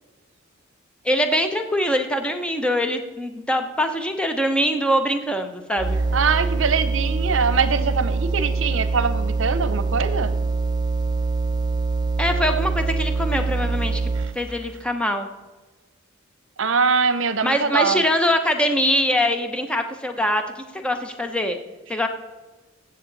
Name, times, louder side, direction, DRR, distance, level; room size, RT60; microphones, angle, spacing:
voice 1, 1.0-6.0 12.2-15.3 17.4-21.6 21.9-22.1, equal, 5° left, 6 dB, 0.8 m, -23 dB
sound 1, 5.8-14.5, right 4 dB, 20° right, 0.3 m, -24 dB
voice 2, 6.1-10.3 14.2-14.3 16.6-18.0, right 5 dB, 70° right, 12 dB, 0.8 m, -23 dB
14.5 x 7.8 x 4.0 m, 1.2 s
head